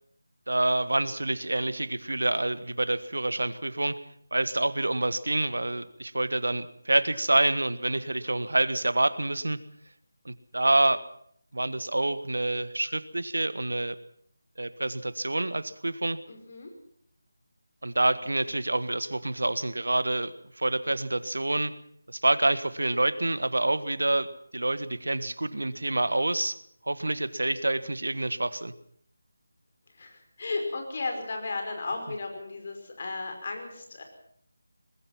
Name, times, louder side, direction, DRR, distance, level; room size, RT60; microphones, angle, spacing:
voice 1, 0.5-3.9 4.3-9.6 10.2-11.0 11.5-13.9 14.6-16.2 17.8-21.7 22.1-24.3 24.5-26.6 26.8-28.7, right 2 dB, 70° right, 14 dB, 1.5 m, -27 dB
voice 2, 16.3-16.7 29.9-34.0, left 3 dB, 40° left, 4 dB, 5.4 m, -35 dB
23.0 x 20.0 x 5.9 m, 0.66 s
figure-of-eight pair, 160°, 0 cm